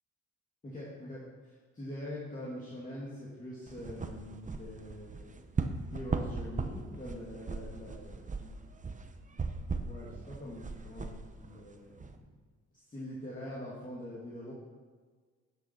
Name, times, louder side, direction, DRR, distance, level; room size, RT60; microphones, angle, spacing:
voice 1, 0.6-5.3 5.9-8.5 9.5-12.0 12.9-14.5, left 1 dB, 25° left, -6 dB, 2.5 m, -44 dB
sound 1, 3.7-12.1, right 4 dB, 25° right, 0.9 m, -38 dB
10.5 x 8.8 x 4.6 m, 1.5 s
cardioid pair, 90°, 30 cm